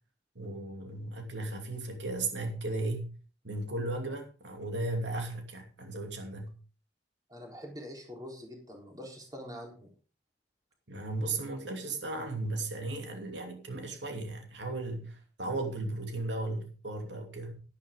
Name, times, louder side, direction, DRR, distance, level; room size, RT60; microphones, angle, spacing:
voice 1, 0.3-3.1 3.4-6.5 10.9-17.6, right 2 dB, 85° right, 2.7 m, -36 dB
voice 2, 7.3-9.9, equal, 20° right, 3.9 m, -45 dB
12.0 x 11.5 x 3.7 m
head